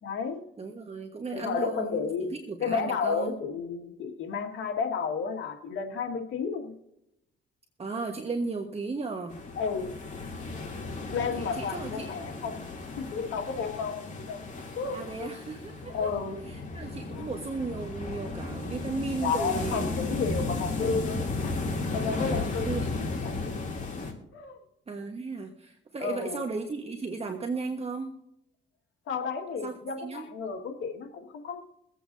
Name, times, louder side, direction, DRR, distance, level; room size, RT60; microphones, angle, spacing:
voice 1, 0.0-0.4 1.3-2.3 2.6-6.7 9.6-9.9 11.1-12.6 13.0-14.4 14.8-15.3 15.9-16.4 17.1-17.3 19.2-21.5 21.9-22.7 23.2-23.6 24.3-24.6 26.0-26.5 29.1-31.6, left 5 dB, 75° left, 3 dB, 1.9 m, -32 dB
voice 2, 0.6-3.4 7.8-9.4 11.3-12.3 14.9-16.1 16.5-19.9 22.2-22.9 24.9-28.1 29.6-30.3, right 4 dB, 30° right, 3 dB, 1.4 m, -35 dB
sound 1, 9.3-24.1, left 3 dB, 40° left, 2.9 m, -34 dB
24.0 x 8.4 x 2.7 m, 0.81 s
cardioid pair, 90°, 20 cm